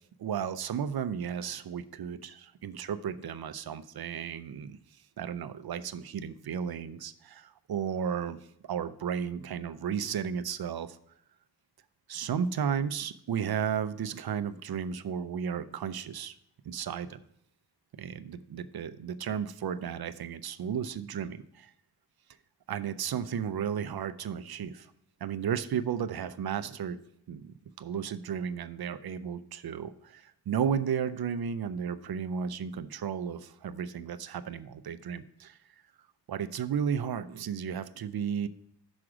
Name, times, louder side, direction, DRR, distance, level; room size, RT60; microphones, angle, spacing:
voice 1, 0.2-4.8 5.2-8.4 8.6-11.0 12.1-16.3 16.7-17.2 17.9-21.7 22.7-24.9 25.2-27.0 27.3-35.6 36.3-38.5, right 7 dB, 55° right, 13 dB, 0.5 m, -34 dB
6.3 x 4.9 x 5.9 m, 0.74 s
wide cardioid pair, 140°, 44 cm